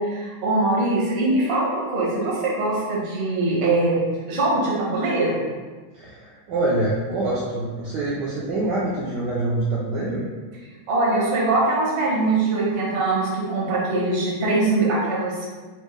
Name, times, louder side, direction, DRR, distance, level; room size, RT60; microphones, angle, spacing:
voice 1, 0.0-4.0 4.3-5.4 10.9-15.5, right 2 dB, 50° right, -6 dB, 0.8 m, -22 dB
voice 2, 5.9-10.2, right 2 dB, 75° right, -6 dB, 1.0 m, -25 dB
4.1 x 2.1 x 3.1 m, 1.4 s
omnidirectional pair, 2.3 m